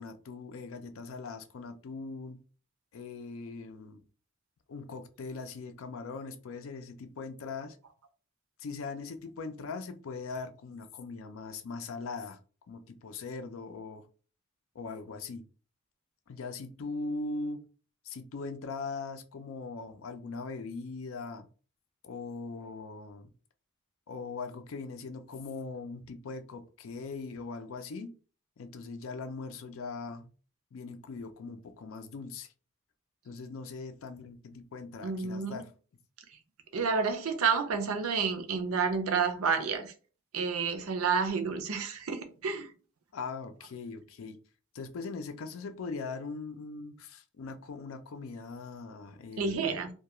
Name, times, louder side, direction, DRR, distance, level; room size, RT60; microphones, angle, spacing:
voice 1, 0.0-2.4 2.9-4.0 4.7-7.8 8.6-12.4 12.7-14.1 14.7-15.4 16.3-17.6 18.0-21.5 22.0-23.3 24.1-28.1 28.6-30.3 30.7-32.5 33.2-35.7 43.1-44.4 44.7-49.8, left 4 dB, 70° left, 0.4 m, -40 dB
voice 2, 35.0-35.6 36.7-39.9 40.3-42.7 49.4-49.9, right 5 dB, 80° right, 0.5 m, -30 dB
2.2 x 2.2 x 2.9 m
head